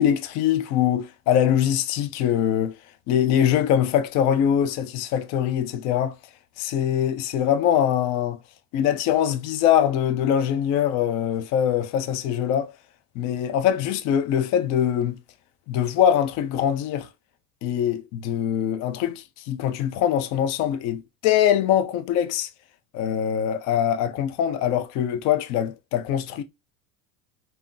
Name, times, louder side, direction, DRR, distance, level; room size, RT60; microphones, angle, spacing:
voice 1, 0.0-2.8 3.1-6.1 6.6-8.4 8.7-12.7 13.2-15.2 15.7-17.1 17.6-22.5 22.9-26.4, left 9 dB, 45° left, 0.4 m, -23 dB
3.6 x 2.1 x 2.5 m
supercardioid pair, 130°, 41 cm